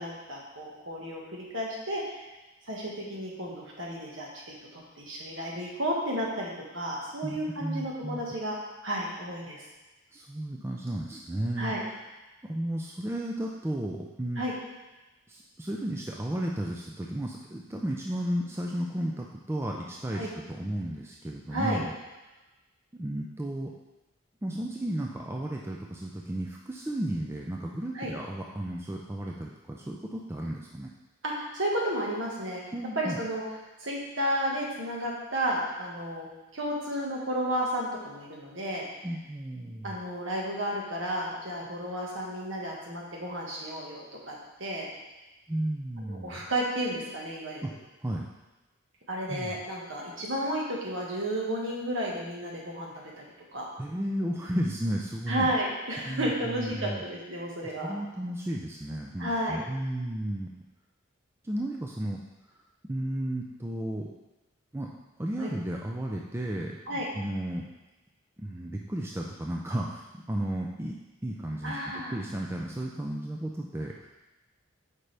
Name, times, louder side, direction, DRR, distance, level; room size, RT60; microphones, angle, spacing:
voice 1, 0.0-2.2 2.7-8.6 8.8-9.6 11.6-11.8 14.4-14.5 20.1-20.3 21.5-21.8 27.9-28.1 31.2-32.6 32.9-33.4 33.8-36.3 36.5-38.8 39.8-44.9 46.1-47.7 49.1-53.2 53.5-53.7 55.3-57.9 59.2-59.6 65.4-65.5 66.9-67.1 71.6-72.1, right 1 dB, 60° right, -2 dB, 1.6 m, -32 dB
voice 2, 7.2-8.2 10.1-11.7 12.4-14.4 15.3-21.9 22.9-23.7 24.4-30.9 32.7-33.2 39.0-40.0 45.5-46.4 47.6-47.7 48.0-48.3 49.3-49.5 53.8-55.5 56.0-57.0 57.8-60.5 61.4-62.2 62.5-64.1 64.7-64.9 65.2-67.7 68.4-74.2, right 1 dB, 10° right, -1 dB, 0.4 m, -33 dB
8.6 x 5.1 x 3.4 m, 1.1 s
head